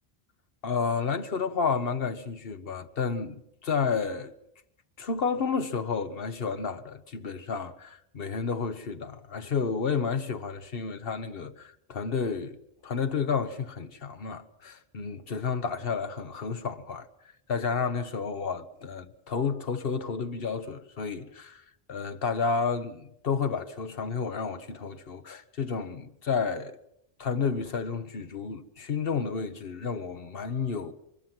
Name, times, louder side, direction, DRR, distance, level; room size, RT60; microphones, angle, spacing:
voice 1, 0.6-4.3 5.0-12.6 12.8-17.1 17.5-21.6 21.9-26.8 27.2-30.9, left 5 dB, 65° left, 1.4 m, -31 dB
24.0 x 21.0 x 6.1 m
omnidirectional pair, 1.0 m